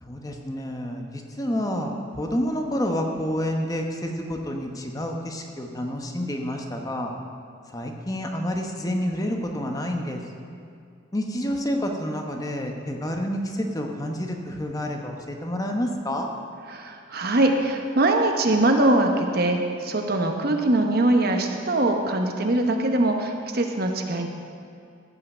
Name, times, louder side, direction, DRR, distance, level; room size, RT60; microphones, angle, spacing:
voice 1, 0.0-7.1 7.7-10.2 11.1-16.3, equal, 20° left, 2 dB, 0.9 m, -29 dB
voice 2, 16.7-24.3, right 2 dB, 55° right, 4 dB, 1.0 m, -22 dB
15.0 x 5.7 x 7.2 m, 2.4 s
head